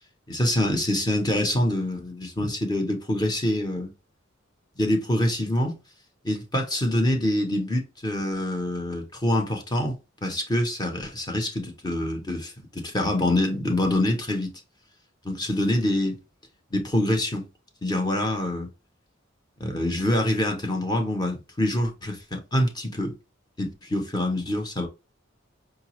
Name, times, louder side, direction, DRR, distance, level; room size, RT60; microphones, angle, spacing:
voice 1, 0.3-3.9 4.8-5.8 6.2-14.5 15.2-16.2 16.7-17.5 17.8-18.7 19.6-23.1 23.6-24.9, left 1 dB, 20° left, 0.7 m, -25 dB
4.8 x 2.2 x 2.9 m
head